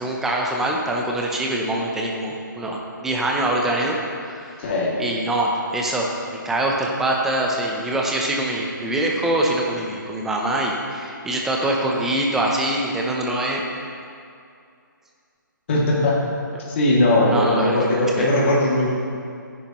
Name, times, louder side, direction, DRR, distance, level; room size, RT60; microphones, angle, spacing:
voice 1, 0.0-4.0 4.2-4.5 5.0-6.1 6.4-13.6 17.3-18.3, right 1 dB, 5° right, -1 dB, 0.6 m, -24 dB
voice 2, 4.6-5.0 15.7-16.2 16.7-18.9, left 1 dB, 35° left, -4 dB, 2.3 m, -19 dB
14.5 x 10.0 x 3.0 m, 2.4 s
hypercardioid pair, 165°, 11 cm